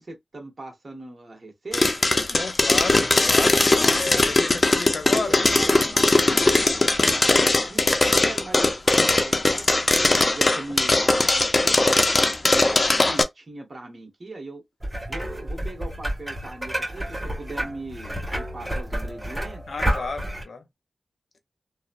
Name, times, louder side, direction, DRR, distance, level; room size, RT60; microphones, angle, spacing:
voice 1, 0.0-2.1 4.1-4.3 5.0-6.0 7.7-7.8 8.1-14.6 15.1-19.6, right 2 dB, 45° right, 1.1 m, -39 dB
sound 1, 1.7-13.2, left 2 dB, 35° left, 0.5 m, -20 dB
voice 2, 2.3-5.4 17.6-17.7 19.7-20.7, left 3 dB, 65° left, 0.7 m, -32 dB
sound 2, 14.8-20.4, equal, 5° right, 1.7 m, -30 dB
3.0 x 2.0 x 2.5 m
wide cardioid pair, 80°, 0 cm